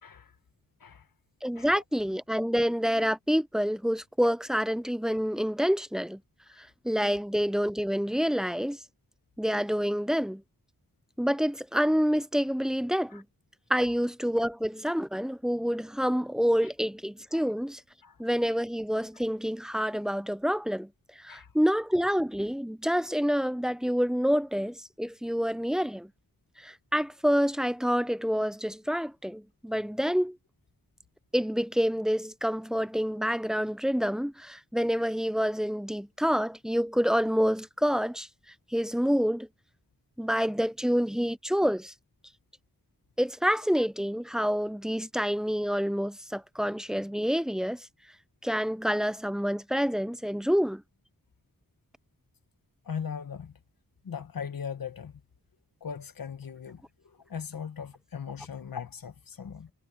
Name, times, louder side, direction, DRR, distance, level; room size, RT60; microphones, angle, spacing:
voice 1, 0.0-0.3 0.8-1.1 1.5-1.8 6.5-6.6 13.1-13.2 17.3-17.4 18.0-18.2 19.7-19.8 21.3-21.5 52.8-53.5 54.0-55.1 55.8-59.7, left 7 dB, 90° left, 1.6 m, -39 dB
voice 2, 1.4-6.2 6.6-8.8 9.4-10.4 11.2-13.2 13.7-17.8 18.2-20.9 21.2-26.1 26.6-30.4 31.3-38.3 38.7-39.5 40.2-41.9 43.2-47.9 48.4-50.8, equal, ahead, 0.7 m, -27 dB
wide cardioid pair, 95°, 33 cm